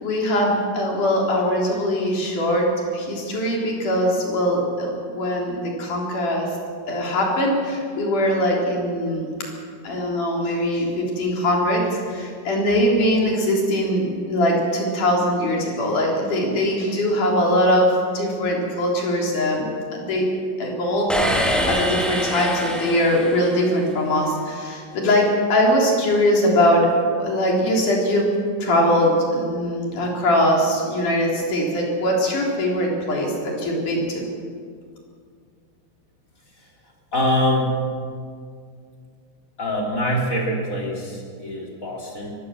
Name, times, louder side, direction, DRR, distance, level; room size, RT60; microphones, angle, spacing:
voice 1, 0.0-6.6 6.9-9.3 9.8-20.3 20.6-26.9 27.2-28.3 28.6-34.3, equal, 50° left, -1 dB, 5.0 m, -21 dB
sound 1, 21.1-23.9, equal, ahead, 0.7 m, -25 dB
voice 2, 37.1-37.8 39.6-42.3, equal, 20° left, -1 dB, 3.2 m, -24 dB
24.5 x 15.0 x 7.3 m, 2.2 s
omnidirectional pair, 4.6 m